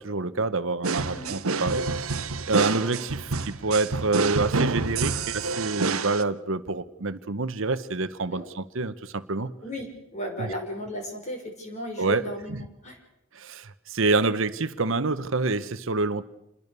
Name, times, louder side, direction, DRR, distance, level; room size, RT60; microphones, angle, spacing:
voice 1, 0.0-2.1 2.5-9.5 10.4-10.5 12.0-12.7 13.3-16.2, right 3 dB, 65° right, 13 dB, 1.0 m, -27 dB
sound 1, 0.8-6.2, right 4 dB, 80° right, 1.2 m, -28 dB
voice 2, 9.6-13.0, left 1 dB, 35° left, 3 dB, 5.8 m, -35 dB
28.0 x 21.5 x 6.8 m, 0.86 s
head